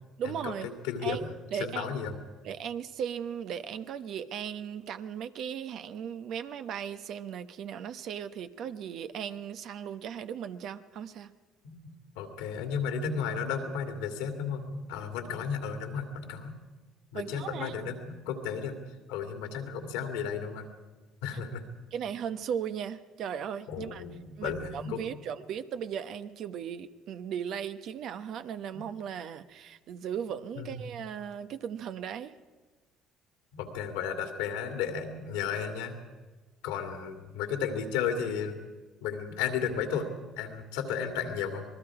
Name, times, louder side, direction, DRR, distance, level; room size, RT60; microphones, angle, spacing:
voice 1, 0.2-0.7 1.0-2.0 2.4-11.3 17.1-17.7 21.3-21.4 21.9-24.0 24.4-32.3, right 8 dB, 65° right, 10 dB, 1.0 m, -37 dB
voice 2, 0.8-2.2 11.6-16.6 17.1-18.8 19.1-20.7 21.2-21.6 23.7-25.0 28.7-28.8 30.6-30.8 33.5-36.0 36.6-38.6 39.0-40.1 40.4-41.6, left 7 dB, 85° left, 5 dB, 2.4 m, -34 dB
26.5 x 20.0 x 4.9 m, 1.3 s
supercardioid pair, 70°, 0 cm